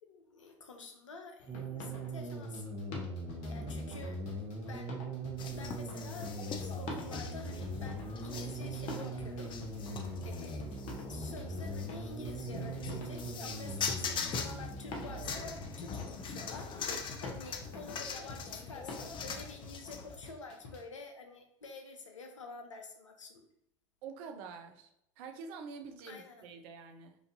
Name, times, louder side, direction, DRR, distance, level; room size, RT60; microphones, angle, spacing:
voice 1, 0.0-2.7 3.5-4.2 4.7-5.0 5.3-9.6 10.2-16.7 17.2-23.4 26.1-26.5, left 3 dB, 85° left, 4 dB, 0.7 m, -49 dB
sound 1, 1.4-20.8, left 3 dB, 55° left, 1.1 m, -47 dB
sound 2, 1.5-16.0, right 2 dB, 25° right, 0.9 m, -41 dB
voice 2, 3.4-4.0 9.9-10.2 24.0-27.2, right 5 dB, 60° right, 6 dB, 0.6 m, -48 dB
sound 3, 5.4-20.2, left 5 dB, 30° left, 0.5 m, -42 dB
4.9 x 2.6 x 2.6 m, 0.80 s
hypercardioid pair, 80°, 16 cm